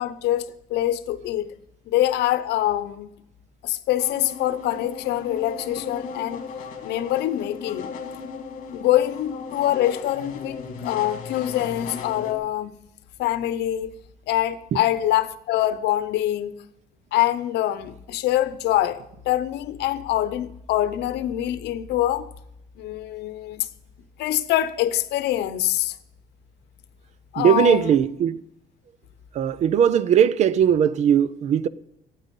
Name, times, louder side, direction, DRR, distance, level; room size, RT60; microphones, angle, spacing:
voice 1, 0.0-1.5 1.9-3.1 3.6-6.4 6.8-7.9 8.7-12.7 13.2-13.9 14.3-16.6 17.1-22.3 22.8-23.7 24.2-26.0 27.3-27.9, left 13 dB, 85° left, 0.8 m, -24 dB
sound 1, 4.0-12.3, left 5 dB, 50° left, 2.2 m, -36 dB
voice 2, 27.4-28.4 29.3-31.7, right 8 dB, 45° right, 0.5 m, -19 dB
13.0 x 9.2 x 5.4 m
cardioid pair, 175°, 17 cm